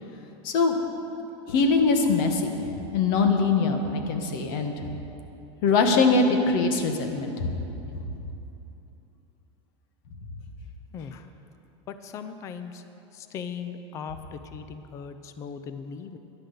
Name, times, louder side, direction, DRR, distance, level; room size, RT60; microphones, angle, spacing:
voice 1, 0.4-0.8 1.5-4.7 5.6-7.5, left 4 dB, 50° left, 4 dB, 1.5 m, -22 dB
voice 2, 10.9-11.3 11.9-12.8 13.1-16.2, left 6 dB, 20° left, 9 dB, 0.5 m, -38 dB
13.0 x 10.5 x 6.8 m, 2.9 s
supercardioid pair, 165°, 15 cm